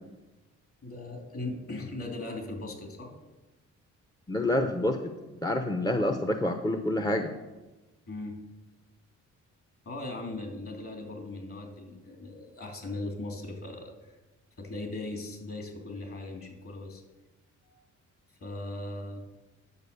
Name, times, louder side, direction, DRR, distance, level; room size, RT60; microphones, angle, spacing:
voice 1, 0.8-3.1 8.1-8.4 9.8-13.9 14.6-17.0 17.6-17.8 18.4-19.2, left 2 dB, 45° left, 3 dB, 3.3 m, -38 dB
voice 2, 4.3-5.0 5.4-7.3, left 1 dB, 15° left, 6 dB, 0.8 m, -27 dB
10.5 x 7.4 x 6.9 m, 1.1 s
cardioid pair, 90°, 30 cm